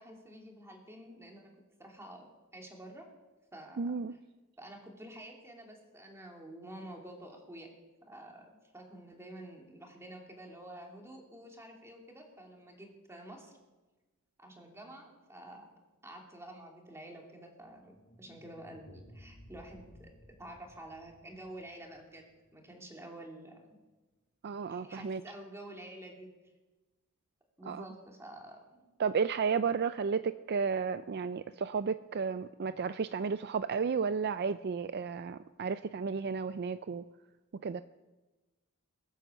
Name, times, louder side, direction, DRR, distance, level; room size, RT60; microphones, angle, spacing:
voice 1, 0.0-1.5 1.8-2.3 2.5-3.1 3.5-4.0 4.6-7.7 8.1-13.5 14.4-15.6 16.0-20.1 20.4-23.7 24.7-26.3 27.6-28.8, right 1 dB, 10° right, 2.8 m, -49 dB
voice 2, 3.8-4.1 24.4-25.2 27.7-27.8 29.0-37.0 37.6-37.8, right 5 dB, 50° right, 0.4 m, -33 dB
sound 1, 17.6-22.7, equal, 30° left, 1.8 m, -58 dB
22.0 x 9.2 x 7.1 m
head